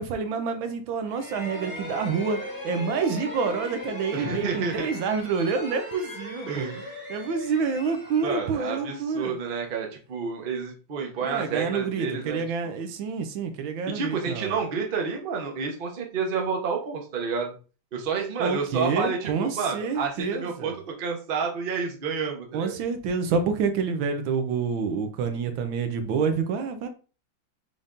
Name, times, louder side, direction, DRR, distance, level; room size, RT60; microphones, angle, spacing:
voice 1, 0.0-2.4 2.6-6.8 7.1-9.3 11.2-14.5 18.4-20.7 22.5-26.9, right 5 dB, 80° right, 1.4 m, -28 dB
sound 1, 1.0-9.7, left 1 dB, 10° left, 1.2 m, -39 dB
voice 2, 4.1-4.9 6.5-7.0 8.2-12.8 13.9-17.5 17.9-22.7, right 5 dB, 40° right, 0.8 m, -30 dB
5.5 x 3.5 x 2.5 m
omnidirectional pair, 2.2 m